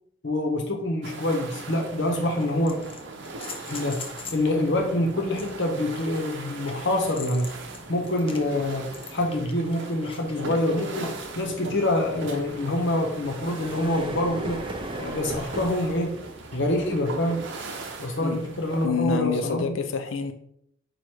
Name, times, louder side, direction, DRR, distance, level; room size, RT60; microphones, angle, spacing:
voice 1, 0.2-2.8 3.7-4.1 4.3-7.5 7.9-14.6 15.0-16.1 16.5-17.5 18.0-19.8, left 1 dB, 65° left, 0.9 m, -26 dB
sound 1, 1.0-18.9, right 3 dB, 65° right, 0.8 m, -39 dB
sound 2, 2.4-4.5 5.3-10.4 11.0-11.4 13.0-13.1, left 4 dB, 30° left, 0.6 m, -42 dB
sound 3, 3.0-19.2, right 1 dB, 25° right, 0.6 m, -42 dB
voice 2, 18.8-20.3, left 6 dB, 85° left, 0.5 m, -27 dB
4.8 x 2.5 x 4.5 m
head